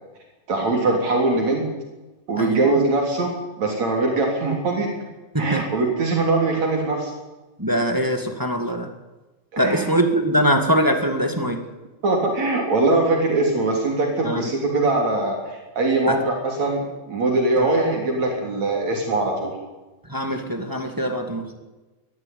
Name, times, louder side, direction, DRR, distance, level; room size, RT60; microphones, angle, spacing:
voice 1, 0.5-1.7 2.3-3.3 3.6-4.9 5.4-7.1 9.5-9.8 12.0-19.5, right 2 dB, 65° right, 0 dB, 4.6 m, -22 dB
voice 2, 2.4-2.8 5.3-5.7 7.6-8.9 9.6-11.6 14.2-14.5 16.1-16.2 17.6-17.7 20.1-21.5, equal, 10° right, 5 dB, 1.4 m, -22 dB
21.5 x 13.5 x 9.3 m, 1.1 s
omnidirectional pair, 3.4 m